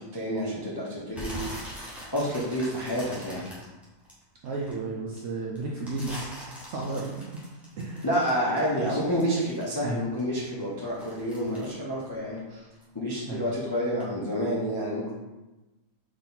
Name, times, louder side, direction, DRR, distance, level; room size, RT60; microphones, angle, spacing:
voice 1, 0.0-1.7 2.1-3.5 8.0-12.7 12.9-15.1, equal, 30° left, -6 dB, 0.4 m, -29 dB
sound 1, 1.1-4.7 5.1-9.9 10.2-12.9 13.2-13.6 14.0-14.1, equal, ahead, 0.9 m, -42 dB
voice 2, 4.4-6.3 6.7-7.4 7.8-8.1 8.8-9.1 9.8-10.0 13.3-13.4, right 3 dB, 65° right, -3 dB, 0.7 m, -33 dB
4.2 x 3.2 x 3.9 m, 1.1 s
omnidirectional pair, 1.7 m